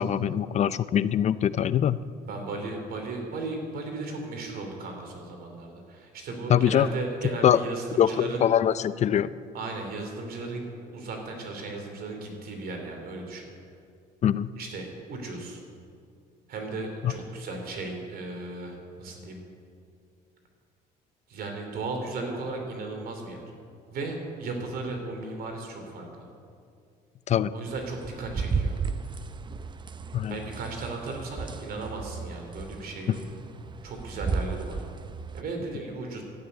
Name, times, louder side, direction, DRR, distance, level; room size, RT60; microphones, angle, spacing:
voice 1, 0.0-2.0 6.5-6.9 7.4-7.6 8.0-9.3 14.2-14.5 17.0-17.1 27.3-27.5 30.1-30.4 33.1-33.2, left 9 dB, 40° left, 16 dB, 0.5 m, -23 dB
voice 2, 2.2-8.4 9.5-10.7 10.9-13.5 14.6-15.6 16.5-19.4 21.3-23.4 23.9-26.3 27.5-28.8 30.3-33.2 33.8-34.8 35.3-36.2, right 3 dB, 65° right, 3 dB, 3.0 m, -36 dB
sound 1, 27.7-35.4, right 5 dB, 25° right, 0.6 m, -34 dB
12.0 x 9.2 x 9.8 m, 2.4 s
cardioid pair, 110°, 17 cm